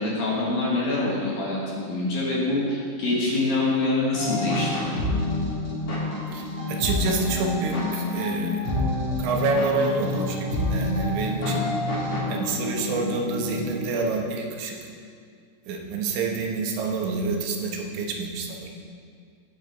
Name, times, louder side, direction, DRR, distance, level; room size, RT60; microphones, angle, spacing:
voice 1, 0.0-4.7, left 2 dB, 60° left, -5 dB, 2.8 m, -25 dB
sound 1, 4.1-14.0, left 2 dB, 40° left, 3.3 m, -28 dB
voice 2, 6.3-8.6 9.2-11.7 12.3-14.8 15.7-18.7, right 4 dB, 80° right, 1 dB, 3.3 m, -28 dB
17.0 x 7.5 x 3.4 m, 2.2 s
omnidirectional pair, 5.4 m